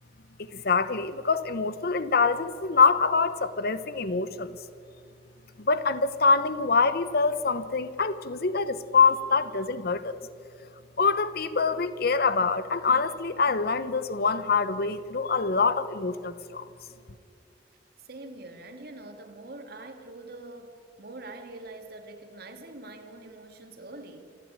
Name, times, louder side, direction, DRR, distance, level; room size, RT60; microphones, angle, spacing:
voice 1, 0.4-4.6 5.6-10.2 11.0-16.6, left 4 dB, 60° left, 13 dB, 0.9 m, -25 dB
voice 2, 18.1-24.3, right 2 dB, 60° right, 6 dB, 2.2 m, -44 dB
27.5 x 11.0 x 9.0 m, 2.3 s
head